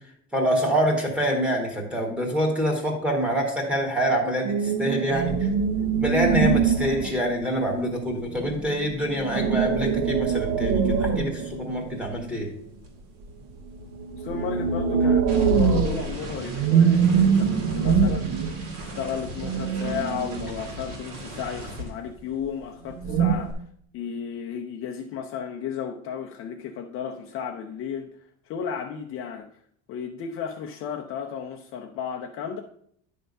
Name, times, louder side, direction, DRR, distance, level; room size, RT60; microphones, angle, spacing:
voice 1, 0.3-5.5 6.0-12.5, equal, 5° right, 1.4 m, -26 dB
sound 1, 4.4-7.6 8.3-12.2 13.7-20.8 22.9-23.3, right 6 dB, 60° right, 0.9 m, -24 dB
sound 2, 6.2-6.4 6.7-11.1 11.3-22.6 22.9-23.5, equal, 80° right, 2.3 m, -40 dB
voice 2, 14.1-18.3 18.9-23.6 23.9-28.1 28.5-29.5 29.9-32.6, left 7 dB, 40° left, 0.6 m, -33 dB
10.0 x 3.4 x 5.3 m
cardioid pair, 160°, 34 cm